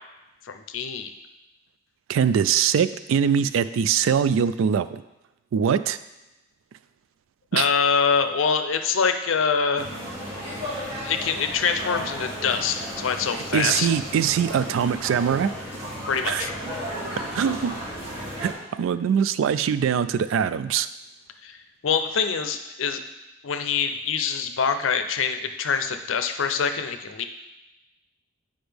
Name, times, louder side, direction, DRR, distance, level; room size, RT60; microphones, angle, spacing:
voice 1, 0.5-1.1 7.5-9.9 11.0-13.9 16.0-16.6 21.4-21.6 21.8-23.0 23.4-27.2, left 6 dB, 80° left, 8 dB, 0.5 m, -25 dB
voice 2, 2.1-5.0 5.5-6.0 7.5-7.7 13.5-15.5 16.3-16.5 17.3-17.7 18.4-18.5 18.8-20.9, right 7 dB, 80° right, 15 dB, 0.3 m, -22 dB
sound 1, 9.8-18.5, equal, 30° right, 2.3 m, -34 dB
7.9 x 5.1 x 3.4 m, 1.0 s
head